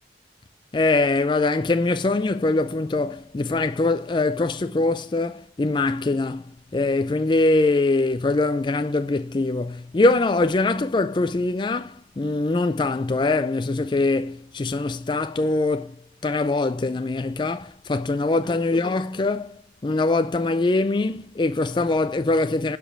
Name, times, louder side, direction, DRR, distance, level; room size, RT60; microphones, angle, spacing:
voice 1, 0.7-16.0 16.2-22.8, left 2 dB, 25° left, 0.4 m, -23 dB
11.5 x 5.1 x 7.3 m
head